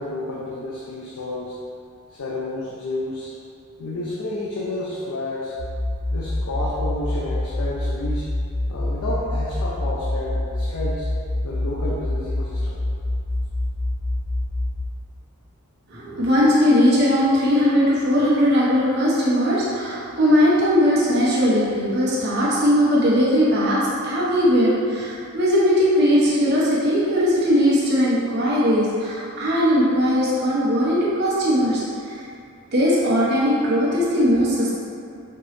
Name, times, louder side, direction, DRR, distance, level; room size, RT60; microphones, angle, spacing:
voice 1, 0.0-1.6 2.1-3.3 3.8-5.5 6.1-8.3 8.7-11.1 11.4-12.8, left 1 dB, 75° left, -5 dB, 0.5 m, -30 dB
sound 1, 5.6-14.8, left 1 dB, 40° left, 1.1 m, -26 dB
voice 2, 15.9-32.2 32.7-34.7, equal, 50° right, -8 dB, 1.0 m, -19 dB
4.4 x 3.1 x 3.2 m, 2.5 s
head